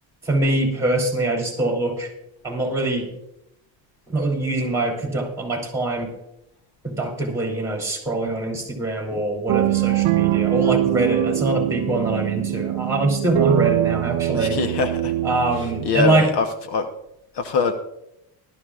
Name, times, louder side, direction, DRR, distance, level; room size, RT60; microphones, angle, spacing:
voice 1, 0.2-2.1 2.4-3.1 4.1-6.1 6.8-14.6 15.2-16.3, right 2 dB, 5° right, 0 dB, 3.0 m, -23 dB
sound 1, 9.5-16.0, right 16 dB, 65° right, 0.7 m, -23 dB
voice 2, 14.3-15.1 15.8-16.5 16.7-16.9 17.4-17.7, left 5 dB, 60° left, 7 dB, 1.1 m, -22 dB
19.0 x 12.5 x 2.4 m, 0.84 s
cardioid pair, 140°, 47 cm